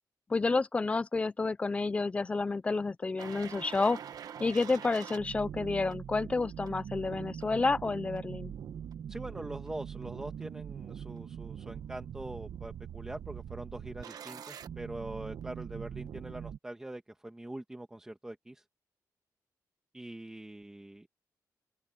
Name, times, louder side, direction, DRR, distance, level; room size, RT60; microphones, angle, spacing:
voice 1, 0.3-4.0 4.4-8.5, left 3 dB, 20° left, 0.5 m, -30 dB
sound 1, 3.2-16.6, right 8 dB, 70° right, 1.1 m, -43 dB
voice 2, 9.1-18.6 19.9-21.1, right 1 dB, 10° right, 1.4 m, -43 dB
open air
wide cardioid pair, 180°, 7 cm